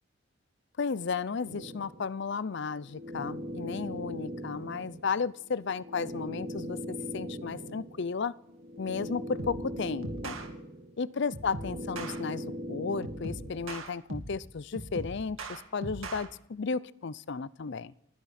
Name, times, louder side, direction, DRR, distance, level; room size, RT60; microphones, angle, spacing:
voice 1, 0.8-8.3 8.8-10.4 11.0-17.9, left 5 dB, 60° left, 19 dB, 0.5 m, -34 dB
sound 1, 1.5-13.8, equal, 50° right, 2.3 m, -40 dB
sound 2, 9.4-9.7 10.0-10.5 11.3-12.2 13.0-14.4 14.7-16.2, right 2 dB, 85° right, 2.2 m, -39 dB
30.0 x 10.5 x 4.3 m, 0.75 s
head